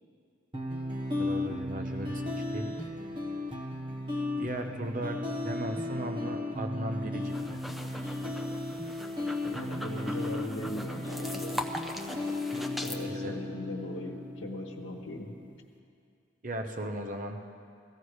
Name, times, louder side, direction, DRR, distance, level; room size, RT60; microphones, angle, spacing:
sound 1, 0.5-15.5, left 2 dB, 25° right, 1.2 m, -35 dB
voice 1, 1.2-2.2 2.5-2.9 4.4-5.2 5.4-7.6 13.0-13.3 16.4-17.4, right 1 dB, 40° right, 4 dB, 0.8 m, -36 dB
sound 2, 7.2-13.0, left 1 dB, ahead, 0.6 m, -41 dB
voice 2, 9.4-11.6 12.8-15.3, left 1 dB, 80° left, 0 dB, 1.2 m, -39 dB
16.0 x 14.5 x 4.8 m, 2.3 s
head